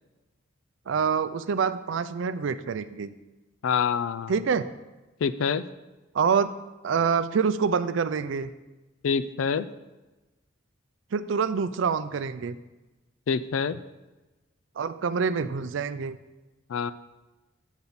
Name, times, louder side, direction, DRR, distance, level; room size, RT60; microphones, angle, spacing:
voice 1, 0.9-3.1 4.3-4.7 6.1-6.5 6.8-8.5 11.1-12.6 14.8-16.2, right 6 dB, 70° right, 13 dB, 0.4 m, -26 dB
voice 2, 3.6-4.3 5.2-5.6 9.0-9.7 13.3-13.8 16.7-16.9, left 6 dB, 85° left, 14 dB, 0.4 m, -26 dB
8.5 x 7.1 x 4.0 m, 1.1 s
head